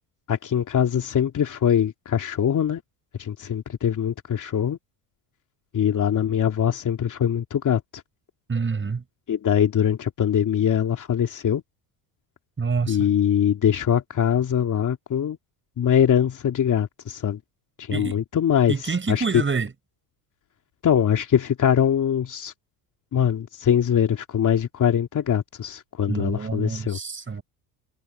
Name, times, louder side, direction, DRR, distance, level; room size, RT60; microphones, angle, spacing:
voice 1, 0.3-2.8 3.2-4.8 5.7-8.0 9.3-11.6 12.9-15.4 15.8-17.4 17.8-18.7 19.1-19.4 20.8-22.5 23.1-27.0, left 9 dB, 40° left, 2.8 m, -22 dB
voice 2, 8.5-9.0 12.6-13.0 17.9-18.2 18.7-19.7 26.1-27.4, right 5 dB, 25° right, 8.0 m, -27 dB
supercardioid pair, 95°, 47 cm